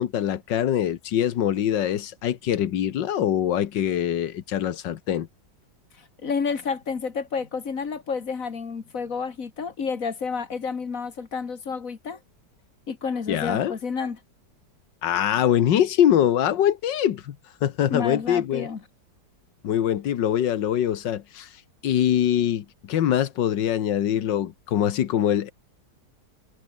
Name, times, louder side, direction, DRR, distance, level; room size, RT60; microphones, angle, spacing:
voice 1, 0.0-5.3 13.3-13.7 15.0-17.4 17.6-18.7 19.6-21.5 21.8-25.5, left 10 dB, 90° left, 1.8 m, -23 dB
voice 2, 6.2-12.2 12.9-14.2 17.9-18.8, left 5 dB, 50° left, 2.1 m, -30 dB
omnidirectional pair, 1.9 m